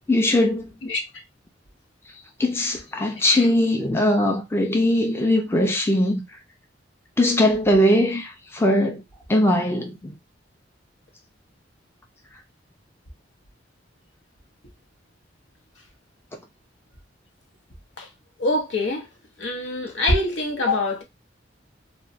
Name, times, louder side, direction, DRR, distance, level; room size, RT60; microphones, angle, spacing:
voice 1, 0.1-0.7 2.4-6.4 7.2-9.0 9.3-10.1, left 1 dB, 15° left, 0.4 m, -20 dB
voice 2, 18.4-19.1 19.4-21.0, left 2 dB, 80° left, 0.8 m, -24 dB
3.0 x 2.2 x 2.7 m
head